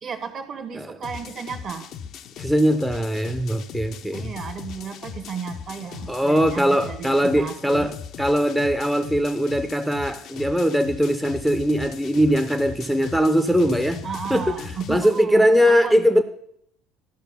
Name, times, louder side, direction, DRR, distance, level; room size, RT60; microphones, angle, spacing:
voice 1, 0.0-1.9 4.1-7.9 14.0-16.0, right 6 dB, 40° right, 1.1 m, -34 dB
sound 1, 1.0-15.2, left 7 dB, 50° left, 0.6 m, -39 dB
voice 2, 2.4-4.3 6.1-14.0 14.3-16.2, equal, ahead, 0.7 m, -21 dB
12.0 x 6.1 x 6.7 m
figure-of-eight pair, 60°, 0 cm